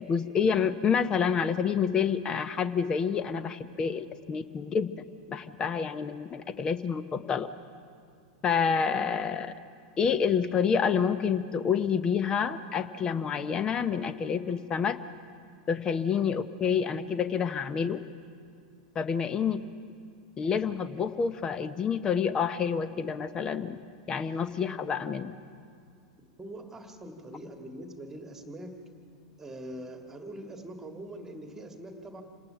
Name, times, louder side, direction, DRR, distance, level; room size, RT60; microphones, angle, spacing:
voice 1, 0.0-7.5 8.4-9.5 10.0-15.0 15.7-18.0 18.9-19.6 20.4-23.8 24.1-25.3, left 6 dB, 25° left, 13 dB, 0.8 m, -28 dB
voice 2, 26.4-28.8 29.4-32.2, right 1 dB, 15° right, 4 dB, 1.9 m, -43 dB
27.0 x 19.0 x 5.7 m, 2.2 s
figure-of-eight pair, 90°, 3 cm